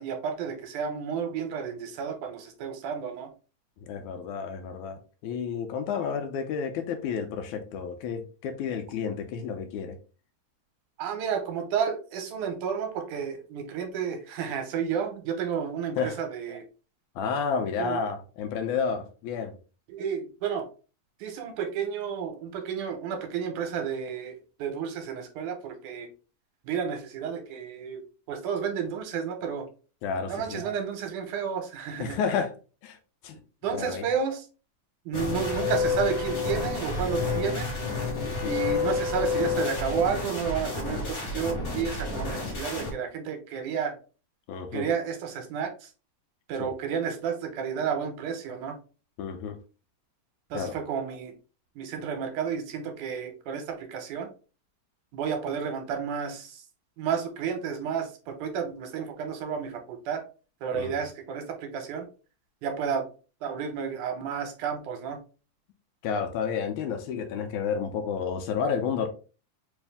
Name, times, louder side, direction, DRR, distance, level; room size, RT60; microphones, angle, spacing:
voice 1, 0.0-3.3 11.0-16.6 17.8-18.0 19.9-20.7 21.2-24.3 24.6-26.1 26.7-28.0 28.3-29.7 30.3-32.2 33.6-34.4 35.1-37.7 38.4-43.9 44.7-45.9 46.5-48.8 50.5-51.3 51.8-54.3 55.1-56.6 57.0-60.2 60.6-62.1 62.6-63.0 63.4-65.2, right 7 dB, 80° right, 5 dB, 2.2 m, -31 dB
voice 2, 3.8-10.0 16.0-16.2 17.2-19.5 30.0-30.6 32.0-32.5 32.8-33.0 33.2-33.4 33.7-34.1 38.2-38.5 44.5-44.9 46.6-46.7 49.2-49.6 50.5-50.8 60.7-60.9 66.0-69.1, left 6 dB, 80° left, 6 dB, 2.0 m, -31 dB
sound 1, 35.1-42.9, left 4 dB, 50° left, 1.1 m, -29 dB
4.8 x 2.6 x 3.4 m, 0.35 s
omnidirectional pair, 3.6 m